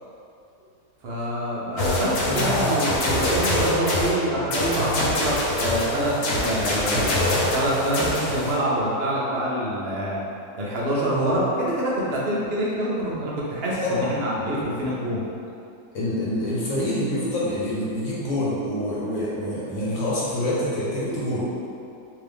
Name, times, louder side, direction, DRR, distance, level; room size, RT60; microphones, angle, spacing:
voice 1, 1.0-6.1 6.4-10.2 10.6-15.2, right 1 dB, 50° right, -6 dB, 0.8 m, -26 dB
sound 1, 1.8-4.1 4.5-8.6, left 1 dB, 75° left, 1.2 m, -24 dB
voice 2, 2.3-2.7 11.1-11.3 13.8-14.1 14.8-14.9 15.9-21.6, left 1 dB, 55° left, -8 dB, 1.1 m, -26 dB
3.7 x 2.8 x 3.4 m, 2.6 s
omnidirectional pair, 1.7 m